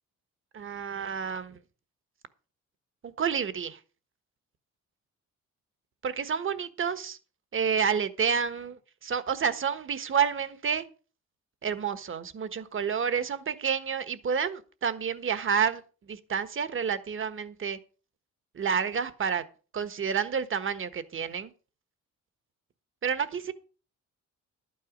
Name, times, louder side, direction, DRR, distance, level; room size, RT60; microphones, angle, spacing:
voice 1, 0.5-1.6 3.0-3.8 6.0-7.2 7.5-10.8 11.6-15.8 16.1-17.8 18.5-19.4 19.7-21.5 23.0-23.5, right 7 dB, 45° right, 1.4 m, -29 dB
11.5 x 9.2 x 5.2 m
cardioid pair, 90°, 30 cm